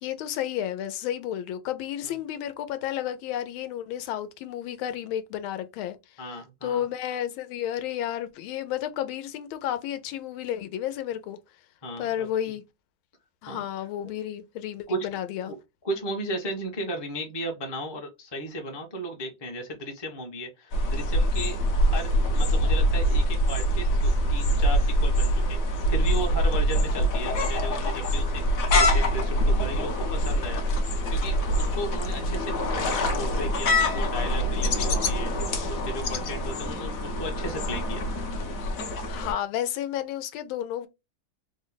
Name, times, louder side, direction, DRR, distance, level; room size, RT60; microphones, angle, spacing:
voice 1, 0.0-6.0 6.6-11.4 12.0-12.6 13.4-15.5 39.1-40.9, left 11 dB, 85° left, 1.4 m, -32 dB
voice 2, 6.2-6.9 11.8-12.3 13.5-13.6 14.9-15.6 15.8-30.6 31.1-35.3 35.7-38.0, equal, 30° left, 0.4 m, -35 dB
sound 1, 20.7-39.3, equal, 60° left, 0.9 m, -24 dB
3.7 x 2.1 x 3.9 m
omnidirectional pair, 2.2 m